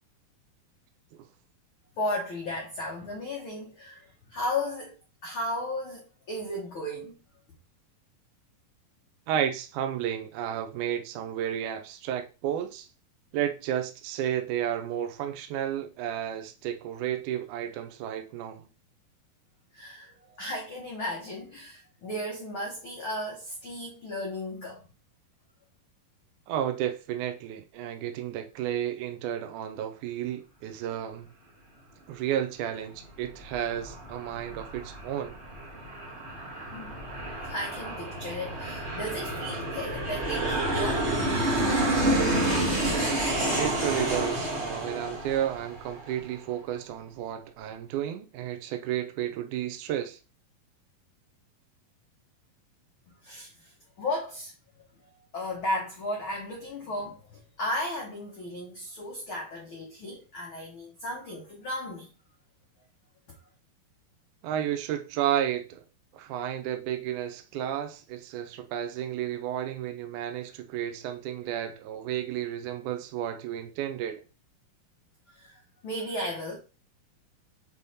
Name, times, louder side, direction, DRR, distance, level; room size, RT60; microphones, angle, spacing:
voice 1, 2.0-5.0 5.2-7.1 19.7-24.8 36.7-36.9 37.4-41.1 53.2-53.7 54.0-54.5 55.3-62.1 75.3-76.6, left 1 dB, 70° left, 1.2 m, -35 dB
voice 2, 9.3-12.9 13.3-18.6 26.5-31.3 32.1-35.4 43.5-50.2 64.4-65.8 66.1-74.2, right 10 dB, 75° right, 1.9 m, -32 dB
Aircraft, 33.0-46.2, right 1 dB, 30° right, 1.2 m, -29 dB
7.1 x 3.3 x 4.1 m
omnidirectional pair, 4.1 m